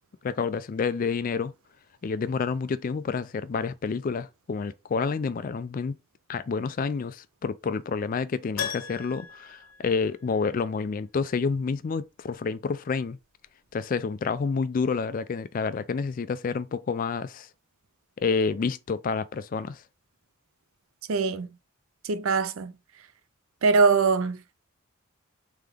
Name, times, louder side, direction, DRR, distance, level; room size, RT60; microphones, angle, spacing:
voice 1, 0.2-1.5 2.0-6.0 6.3-13.2 13.7-17.5 18.2-19.8, left 5 dB, 40° left, 0.3 m, -29 dB
Keyboard (musical), 8.6-10.6 10.9-11.0 13.7-13.8 14.0-14.1, left 7 dB, 70° left, 1.0 m, -37 dB
voice 2, 21.1-21.5 22.1-22.7 23.6-24.4, right 4 dB, 75° right, 0.5 m, -22 dB
3.6 x 3.4 x 3.4 m
head